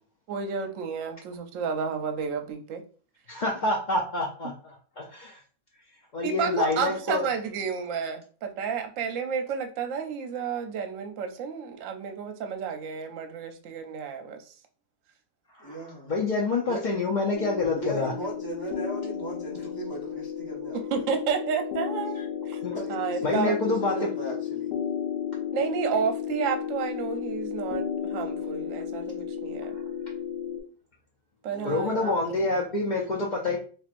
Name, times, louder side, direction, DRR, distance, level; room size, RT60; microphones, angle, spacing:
voice 1, 0.3-2.8 6.2-14.5 20.7-22.6 22.9-23.6 25.5-29.8 31.4-32.1, right 6 dB, 65° right, 6 dB, 0.9 m, -31 dB
voice 2, 3.3-4.5 5.0-5.4 6.1-7.3 15.6-15.7 16.1-18.1 22.6-22.8 23.2-23.9 31.6-33.6, left 3 dB, 85° left, -2 dB, 0.4 m, -27 dB
voice 3, 15.6-16.1 16.7-16.8 17.7-21.1 22.1-22.3 22.6-24.7 31.5-32.1, right 2 dB, 25° left, -6 dB, 0.5 m, -37 dB
sound 1, 17.3-30.6, left 8 dB, 50° left, 1.0 m, -33 dB
4.3 x 2.6 x 2.5 m, 0.40 s
omnidirectional pair, 1.6 m